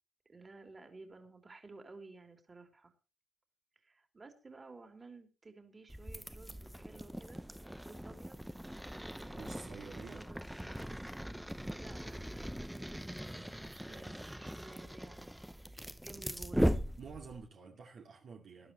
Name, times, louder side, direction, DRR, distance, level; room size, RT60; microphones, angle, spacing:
voice 1, 0.2-2.9 3.7-7.5 7.8-8.4 9.1-10.7 11.8-16.7, right 3 dB, 25° right, 3.3 m, -55 dB
sound 1, 5.9-17.5, equal, 5° right, 0.7 m, -39 dB
voice 2, 9.3-10.3 13.9-14.1 17.0-18.7, right 5 dB, 55° right, 2.3 m, -50 dB
20.0 x 12.0 x 3.1 m
cardioid pair, 90°, 0 cm